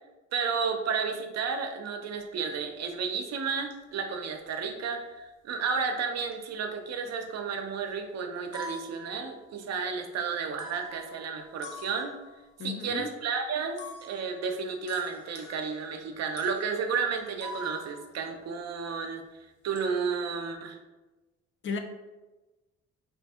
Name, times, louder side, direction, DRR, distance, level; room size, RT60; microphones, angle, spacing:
voice 1, 0.3-12.1 12.6-19.2 19.6-20.8, right 5 dB, 60° right, 5 dB, 0.5 m, -32 dB
sound 1, 2.2-2.3 2.7-3.1 3.7-4.2 4.5-5.1 6.0-6.5 6.8-7.6 8.0-8.1 8.3-9.8 10.6-12.5 13.8-19.0 19.3-20.0, left 1 dB, 75° left, 0.7 m, -47 dB
voice 2, 12.6-13.1 21.6-21.8, left 5 dB, 40° left, 5 dB, 0.5 m, -33 dB
2.7 x 2.6 x 3.5 m, 1.1 s
cardioid pair, 90°, 30 cm